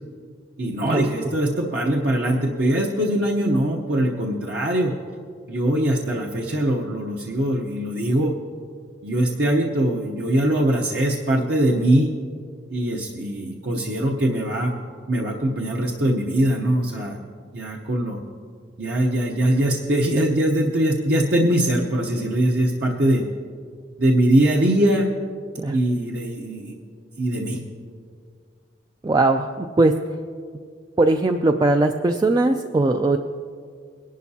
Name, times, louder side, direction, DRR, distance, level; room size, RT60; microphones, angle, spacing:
voice 1, 0.6-4.9 5.5-8.3 9.0-12.1 12.7-14.7 15.1-17.2 17.5-18.2 18.8-23.2 24.0-25.1 25.7-26.8 27.2-27.6, right 1 dB, 60° right, -2 dB, 0.9 m, -22 dB
voice 2, 29.0-29.9 31.0-33.2, right 2 dB, 20° right, 6 dB, 0.3 m, -19 dB
21.0 x 11.5 x 2.8 m, 2.1 s
head